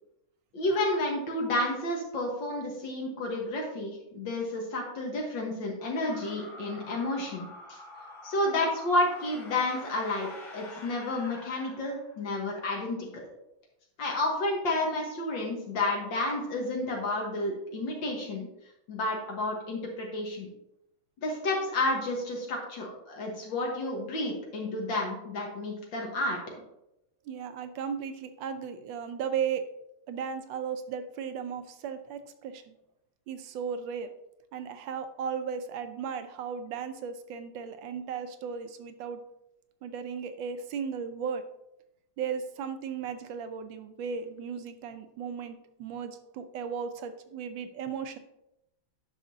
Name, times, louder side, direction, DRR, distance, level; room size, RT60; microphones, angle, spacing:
voice 1, 0.5-7.8 8.2-13.2 14.0-18.5 18.9-20.5 21.2-26.4, left 2 dB, 70° left, 0 dB, 1.9 m, -31 dB
sound 1, 6.0-12.4, left 2 dB, 25° left, 1.4 m, -47 dB
voice 2, 27.3-29.6 30.1-32.8 33.3-34.1 34.5-39.2 39.8-41.4 42.2-48.2, right 7 dB, 75° right, 9 dB, 1.3 m, -36 dB
9.9 x 5.9 x 2.7 m, 0.84 s
omnidirectional pair, 2.2 m